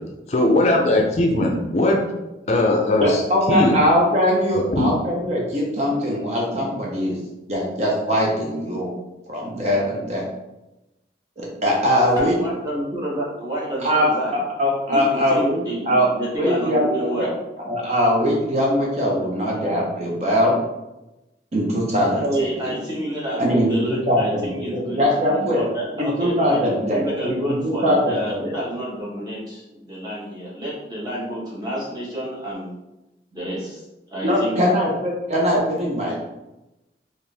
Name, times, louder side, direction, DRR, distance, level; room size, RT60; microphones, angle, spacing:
voice 1, 0.3-2.0 2.5-3.2 3.5-3.7 4.5-4.9, left 1 dB, 40° left, 0 dB, 0.4 m, -19 dB
voice 2, 3.0-7.2 7.5-8.9 9.3-10.2 11.4-12.4 13.8-14.1 14.6-16.1 16.4-17.3 17.7-20.5 21.5-22.8 23.4-25.6 26.0-28.4 34.2-36.2, equal, 40° right, -3 dB, 0.7 m, -21 dB
voice 3, 12.2-14.4 14.9-17.3 22.2-32.7 33.3-33.8 34.1-34.6, right 1 dB, 25° right, -7 dB, 1.3 m, -29 dB
4.2 x 2.5 x 3.3 m, 0.99 s
head